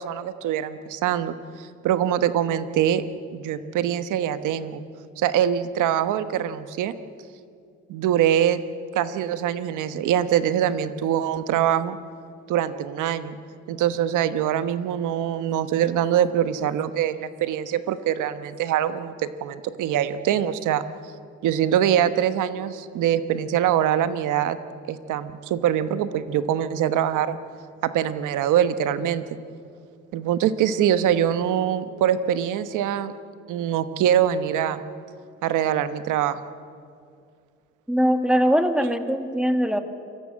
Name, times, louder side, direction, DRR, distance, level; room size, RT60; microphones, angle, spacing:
voice 1, 0.0-3.0 3.3-4.8 5.2-6.9 7.9-8.6 8.9-12.0 12.5-13.4 13.7-20.8 21.4-24.6 24.9-27.4 27.8-29.2 30.1-33.1 33.5-34.8 35.4-36.4, right 10 dB, 90° right, 12 dB, 1.1 m, -23 dB
voice 2, 37.9-39.8, equal, 5° right, 8 dB, 1.8 m, -21 dB
24.5 x 14.0 x 9.5 m, 2.4 s
cardioid pair, 90°, 30 cm